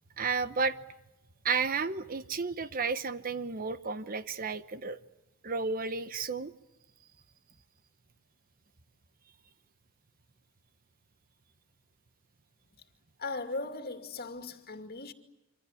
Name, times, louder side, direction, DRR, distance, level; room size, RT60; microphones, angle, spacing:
voice 1, 0.2-0.8 1.4-5.0 5.4-6.5, right 4 dB, 40° right, 0.9 m, -32 dB
voice 2, 13.2-15.1, left 3 dB, 45° left, 2.4 m, -38 dB
27.0 x 26.0 x 8.4 m
head